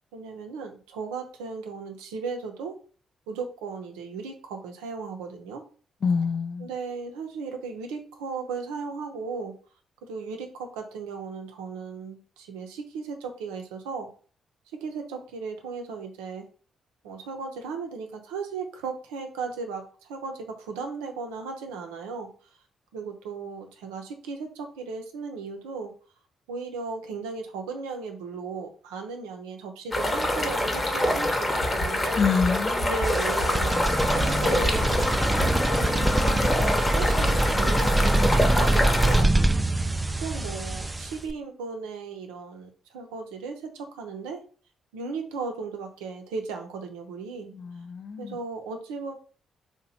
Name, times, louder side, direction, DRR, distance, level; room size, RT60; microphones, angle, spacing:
voice 1, 0.1-2.8 3.3-5.6 6.6-9.5 10.0-14.1 14.7-16.5 17.0-22.3 22.9-25.9 26.5-32.2 32.8-35.2 35.7-39.3 40.2-44.4 44.9-47.5 48.2-49.1, right 4 dB, 80° right, 0.5 m, -36 dB
voice 2, 6.0-6.7 32.2-32.9 47.6-48.4, left 5 dB, 55° left, 0.3 m, -26 dB
sound 1, 29.9-39.2, left 1 dB, 25° left, 0.8 m, -26 dB
sound 2, 31.6-31.9 32.2-32.5 32.8-33.1 33.4-33.7 34.0-34.3 34.6-34.9 35.2-35.5 35.8-36.1 36.4-36.7 37.0-37.3, equal, 70° left, 0.7 m, -30 dB
sound 3, 33.0-41.3, right 2 dB, 20° right, 0.3 m, -24 dB
2.8 x 2.1 x 4.1 m
hypercardioid pair, 40°, 0 cm